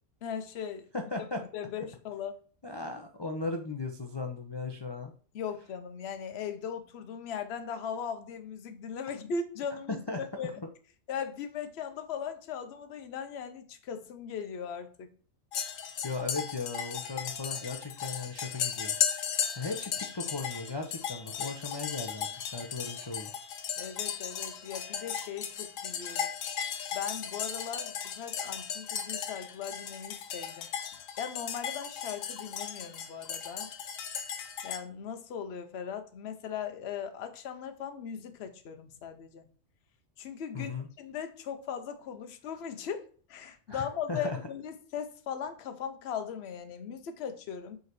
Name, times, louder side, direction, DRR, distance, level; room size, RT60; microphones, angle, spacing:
voice 1, 0.2-0.9 1.3-2.4 5.3-10.6 11.1-15.1 23.8-26.3 26.9-30.7 31.2-33.7 34.6-39.5 40.2-40.7 41.0-47.8, left 7 dB, 60° left, 0.9 m, -38 dB
voice 2, 0.9-1.4 2.6-5.1 9.9-10.2 10.6-10.7 16.0-19.0 19.6-23.3 40.5-40.9 43.7-44.4, left 3 dB, 35° left, 0.4 m, -37 dB
sound 1, 15.5-34.8, left 8 dB, 85° left, 1.2 m, -36 dB
5.4 x 3.9 x 4.6 m
omnidirectional pair, 1.3 m